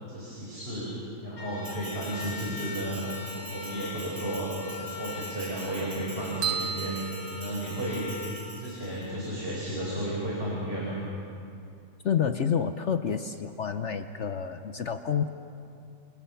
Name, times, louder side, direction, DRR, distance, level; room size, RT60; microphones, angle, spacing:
voice 1, 0.1-0.9 1.2-8.1 8.5-11.0, right 1 dB, 30° right, -5 dB, 5.0 m, -33 dB
sound 1, 1.3-9.4, left 2 dB, 80° left, 3.2 m, -42 dB
Bell, 1.6-9.1, right 2 dB, 55° right, 4.4 m, -45 dB
sound 2, 6.4-8.2, right 8 dB, 75° right, 1.8 m, -34 dB
voice 2, 12.0-15.3, left 7 dB, 60° left, 9 dB, 0.7 m, -29 dB
28.0 x 27.5 x 5.7 m, 2.5 s
omnidirectional pair, 2.1 m